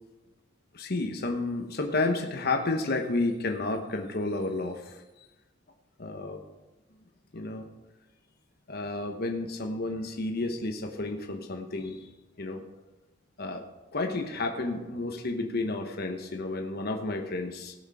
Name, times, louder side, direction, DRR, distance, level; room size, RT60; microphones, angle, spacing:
voice 1, 0.7-5.0 6.0-6.4 7.3-7.7 8.7-12.1 12.4-12.6 13.4-13.6 13.9-17.7, left 2 dB, 50° left, 4 dB, 1.1 m, -31 dB
17.5 x 6.4 x 4.9 m, 1.0 s
head